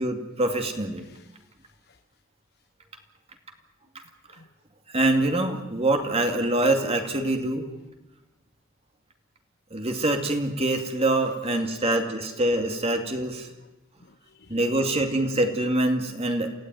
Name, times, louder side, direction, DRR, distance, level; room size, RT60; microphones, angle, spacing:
voice 1, 0.0-1.1 4.9-7.7 9.7-13.5 14.5-16.5, right 1 dB, 30° right, 2.4 m, -25 dB
voice 2, 1.0-2.0 4.3-4.5 14.0-14.8, left 3 dB, 55° left, 1.1 m, -56 dB
28.5 x 17.0 x 9.4 m
head